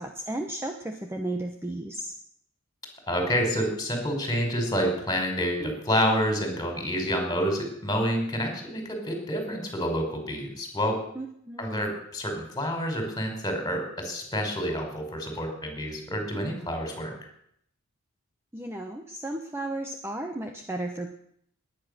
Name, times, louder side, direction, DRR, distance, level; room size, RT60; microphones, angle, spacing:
voice 1, 0.0-2.1 11.2-11.9 18.5-21.1, right 1 dB, 10° right, 4 dB, 1.0 m, -34 dB
voice 2, 3.1-11.0 11.6-17.1, equal, 20° left, 3 dB, 4.8 m, -28 dB
20.0 x 10.0 x 6.7 m, 0.70 s
head